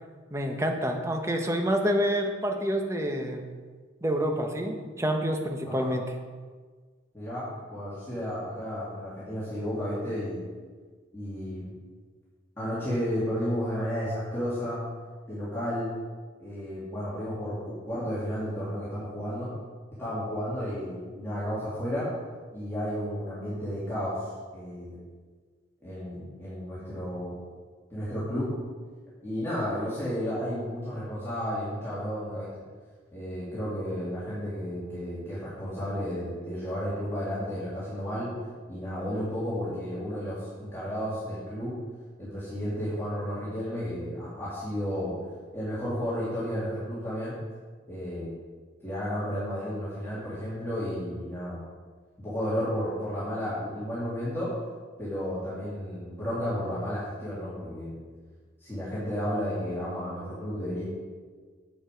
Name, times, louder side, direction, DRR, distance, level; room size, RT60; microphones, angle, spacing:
voice 1, 0.3-3.5 4.0-6.0, equal, 15° right, 3 dB, 0.9 m, -28 dB
voice 2, 5.6-5.9 7.1-7.4 7.7-10.4 11.1-11.7 12.6-14.8 15.3-15.9 16.4-19.5 20.0-22.1 22.5-25.0 25.8-27.4 27.9-28.5 29.2-32.5 33.1-38.3 38.7-41.7 42.2-45.2 45.5-47.4 47.9-48.3 48.8-51.6 52.2-54.5 55.0-58.0 58.6-60.8, equal, 15° left, -11 dB, 2.4 m, -32 dB
8.4 x 7.0 x 5.2 m, 1.5 s
head